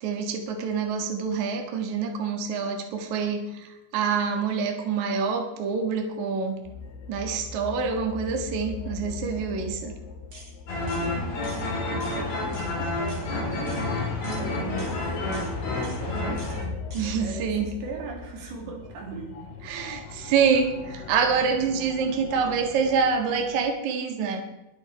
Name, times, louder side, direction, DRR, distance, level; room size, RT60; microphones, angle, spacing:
voice 1, 0.0-6.6 7.1-9.9 16.9-17.7 19.6-24.4, right 5 dB, 55° right, 4 dB, 2.5 m, -26 dB
sound 1, 6.6-23.6, left 5 dB, 80° left, 4.0 m, -40 dB
sound 2, 10.3-10.5 10.9-11.1 11.4-11.7 12.0-12.2 12.5-12.7 13.1-13.3 13.7-13.9 14.2-14.4 14.8-15.0 15.3-15.5 15.8-16.0 16.4-16.6 16.9-17.1, right 2 dB, 35° right, 4.3 m, -46 dB
sound 3, 10.7-16.7, left 2 dB, 60° left, 6.4 m, -29 dB
voice 2, 10.9-13.9 14.3-16.8 17.2-19.4, right 5 dB, 75° right, 1 dB, 5.1 m, -39 dB
21.5 x 8.9 x 4.8 m, 0.98 s
omnidirectional pair, 5.1 m